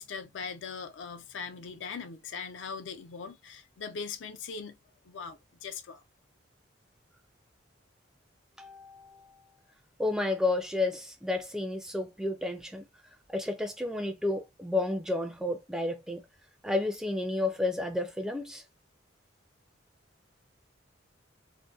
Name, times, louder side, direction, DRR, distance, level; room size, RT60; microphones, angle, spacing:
voice 1, 0.0-4.8 5.0-6.0, left 5 dB, 75° left, 0.4 m, -40 dB
voice 2, 8.6-9.3 10.0-12.9 13.3-16.2 16.6-18.6, left 2 dB, 5° right, 0.3 m, -31 dB
2.6 x 2.1 x 2.2 m
head